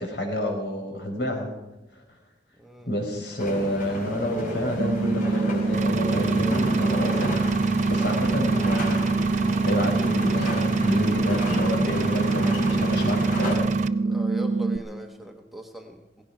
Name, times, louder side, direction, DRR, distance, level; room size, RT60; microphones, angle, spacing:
voice 1, 0.0-1.5 1.9-2.0 2.8-7.3 7.9-9.0 9.3-13.7, equal, 70° left, 2 dB, 5.0 m, -29 dB
voice 2, 2.6-2.9 14.0-16.2, right 2 dB, ahead, 3 dB, 1.0 m, -40 dB
sound 1, 3.4-13.5, left 1 dB, 50° left, 4.6 m, -32 dB
sound 2, 4.8-14.8, right 3 dB, 60° right, 1.1 m, -25 dB
Engine, 5.7-13.9, right 4 dB, 45° right, 0.5 m, -31 dB
17.5 x 16.5 x 4.9 m, 0.98 s
head